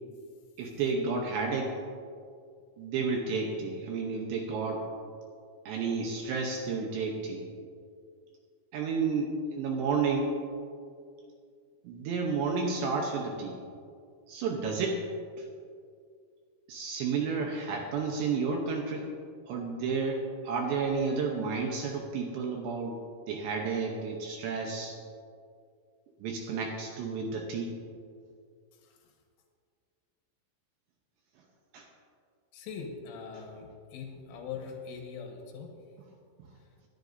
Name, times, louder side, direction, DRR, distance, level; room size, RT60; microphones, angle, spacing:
voice 1, 0.6-1.8 2.8-4.9 5.7-7.4 8.7-10.3 11.8-13.6 14.3-15.1 15.4-15.5 16.7-19.1 19.5-23.0 23.3-25.0 26.2-27.8 31.7-31.9, right 4 dB, 75° right, 1 dB, 2.7 m, -31 dB
voice 2, 28.8-29.1 32.5-35.7, left 6 dB, 75° left, 1 dB, 3.8 m, -42 dB
21.0 x 11.5 x 2.7 m, 2.3 s
omnidirectional pair, 5.9 m